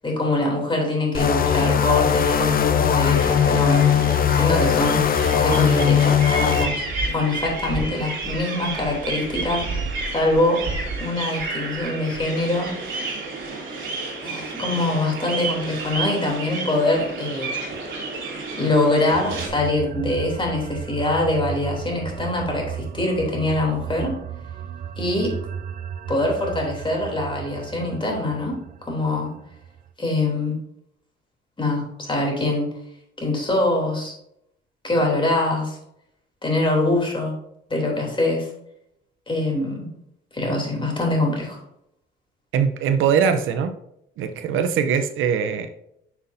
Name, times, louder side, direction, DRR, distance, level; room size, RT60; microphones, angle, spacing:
voice 1, 0.0-3.9 4.3-9.6 10.1-10.6 11.0-12.7 14.2-17.5 18.6-24.1 25.0-25.3 26.1-28.6 28.8-29.3 30.0-30.6 31.6-32.7 33.2-34.1 34.8-35.8 36.4-37.3 37.7-38.5 39.3-39.9 40.3-41.6, left 2 dB, 25° left, -1 dB, 3.1 m, -23 dB
sound 1, 1.1-6.7, left 8 dB, 45° left, 0.7 m, -19 dB
sound 2, 3.0-19.5, right 3 dB, 65° right, 2.9 m, -31 dB
sound 3, 19.1-29.9, right 8 dB, 45° right, 0.5 m, -35 dB
voice 2, 42.5-43.8 44.2-45.7, right 7 dB, 85° right, 9 dB, 0.7 m, -21 dB
9.7 x 5.8 x 2.7 m, 0.77 s
cardioid pair, 90°, 20 cm